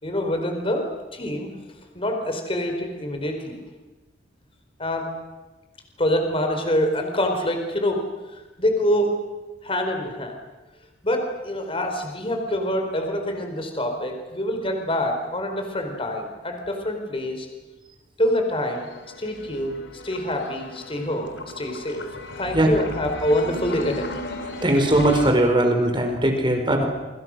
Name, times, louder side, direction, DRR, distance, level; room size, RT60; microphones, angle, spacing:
voice 1, 0.0-1.5 1.9-3.6 4.8-5.1 6.0-8.0 8.3-9.2 9.6-10.4 11.0-17.5 18.2-18.8 19.2-21.3 21.6-22.0 22.4-24.1, left 1 dB, 30° left, 4 dB, 4.3 m, -25 dB
sound 1, 18.5-25.3, left 2 dB, 75° left, 3.5 m, -36 dB
voice 2, 24.6-26.8, right 1 dB, 25° right, 3 dB, 5.0 m, -19 dB
28.5 x 25.0 x 6.4 m, 1.2 s
head